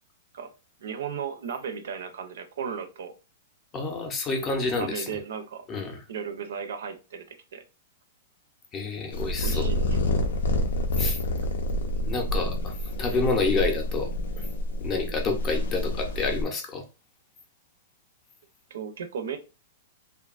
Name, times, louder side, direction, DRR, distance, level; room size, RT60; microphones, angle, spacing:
voice 1, 0.8-3.1 4.7-5.7 6.1-7.2 7.5-7.6 9.4-10.2 18.7-19.4, right 7 dB, 80° right, 8 dB, 0.5 m, -35 dB
voice 2, 3.7-5.1 5.7-6.0 8.7-9.7 11.0-11.2 12.1-12.7 13.0-14.1 14.4-14.5 14.8-16.8, left 3 dB, 20° left, 3 dB, 0.5 m, -28 dB
sound 1, 9.1-16.4, left 1 dB, 80° left, 0.5 m, -28 dB
2.7 x 2.2 x 2.3 m, 0.30 s
supercardioid pair, 165°, 0 cm